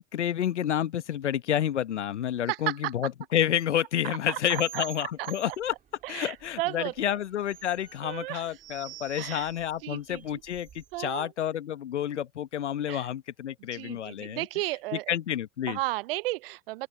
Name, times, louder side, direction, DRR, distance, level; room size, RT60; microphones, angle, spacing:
voice 1, 0.0-5.7 6.1-14.5 15.1-15.8, left 10 dB, 75° left, 1.3 m, -29 dB
voice 2, 2.5-2.9 4.3-4.9 5.2-5.6 6.0-7.2 8.0-8.5 9.2-9.5 9.8-10.4 10.9-11.3 12.1-12.2 12.9-13.1 13.6-15.1 15.7-16.9, right 19 dB, 55° right, 0.6 m, -34 dB
sound 1, 4.4-11.1, right 11 dB, 25° right, 2.1 m, -48 dB
open air
hypercardioid pair, 100°, 35 cm